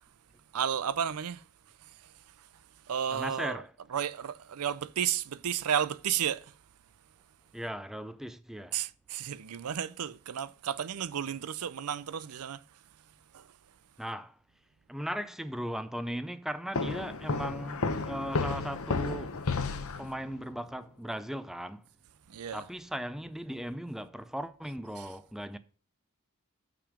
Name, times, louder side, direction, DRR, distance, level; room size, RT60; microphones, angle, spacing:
voice 1, 0.5-3.6 3.9-6.6 8.7-12.8 13.3-13.6 22.3-22.6 25.0-25.1, right 9 dB, 90° right, 0.5 m, -33 dB
voice 2, 3.1-3.7 7.5-8.8 14.0-14.4 14.9-19.4 20.0-21.9 22.5-25.6, equal, ahead, 0.4 m, -37 dB
sound 1, 16.7-20.4, left 4 dB, 70° left, 0.8 m, -32 dB
6.8 x 6.0 x 5.0 m
head